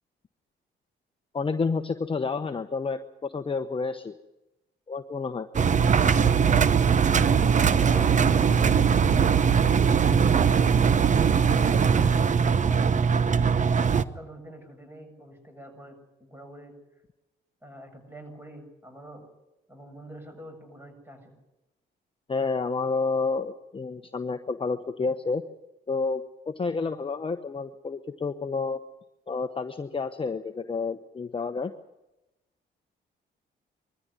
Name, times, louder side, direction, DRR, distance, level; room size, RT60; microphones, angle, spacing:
voice 1, 1.3-4.1 4.9-5.5 22.3-25.4 25.9-28.8 29.3-31.7, left 4 dB, 25° left, 8 dB, 1.0 m, -30 dB
Engine, 5.5-14.0, right 6 dB, 40° right, 0.9 m, -21 dB
voice 2, 7.7-9.4 11.4-12.9 13.7-16.7 17.6-19.3 19.7-21.4, right 1 dB, 10° right, 5 dB, 7.7 m, -45 dB
22.0 x 14.0 x 9.8 m, 0.97 s
cardioid pair, 90°, 20 cm